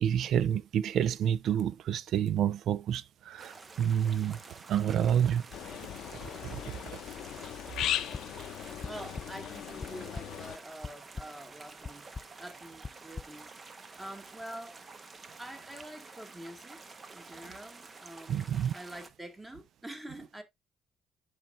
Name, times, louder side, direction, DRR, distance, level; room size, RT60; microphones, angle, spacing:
voice 1, 0.0-4.4 4.7-5.4 6.4-6.6 18.3-18.7, right 9 dB, 75° right, 0.4 m, -28 dB
sound 1, 3.4-19.1, right 4 dB, 35° right, 0.9 m, -50 dB
sound 2, 5.5-10.6, left 12 dB, 85° left, 0.5 m, -38 dB
sound 3, 7.8-8.2 8.8-9.3 9.6-10.2 10.8-11.3 11.8-12.2 12.8-13.2, left 4 dB, 30° left, 0.3 m, -39 dB
voice 2, 8.8-12.1 12.4-13.5 14.0-14.8 15.4-20.4, right 1 dB, 15° right, 2.2 m, -46 dB
10.0 x 4.6 x 2.5 m
cardioid pair, 90°, 0 cm